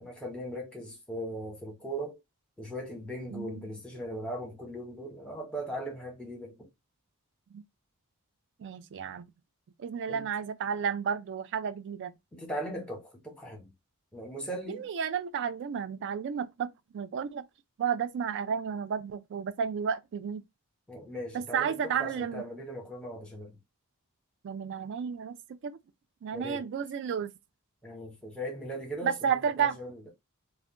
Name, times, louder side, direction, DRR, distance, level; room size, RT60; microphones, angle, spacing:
voice 1, 0.0-2.2 2.6-6.7 10.1-10.2 12.3-13.7 14.1-14.9 20.9-23.6 26.3-26.7 27.8-30.1, right 1 dB, 5° left, 0.9 m, -39 dB
voice 2, 3.3-3.6 7.5-7.6 8.6-9.3 9.8-12.1 14.7-17.4 17.8-20.4 21.3-22.4 24.4-25.4 25.6-25.8 26.2-27.3 29.0-29.8, right 7 dB, 55° right, 0.3 m, -32 dB
2.4 x 2.1 x 3.5 m
head